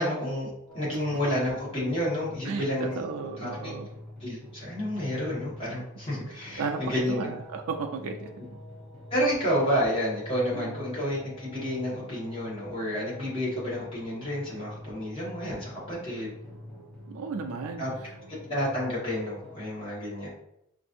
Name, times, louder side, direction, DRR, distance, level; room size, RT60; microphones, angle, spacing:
voice 1, 0.0-3.0 3.4-3.7 4.2-7.3 9.1-16.3 17.8-17.9 18.5-20.3, equal, 25° left, -7 dB, 1.5 m, -30 dB
sound 1, 0.7-19.6, left 1 dB, 5° left, 0.8 m, -46 dB
voice 2, 2.5-3.9 6.6-6.8 7.1-8.3 10.5-10.7 17.1-17.9, right 4 dB, 80° right, 3 dB, 0.4 m, -34 dB
5.3 x 2.6 x 2.6 m, 0.78 s
head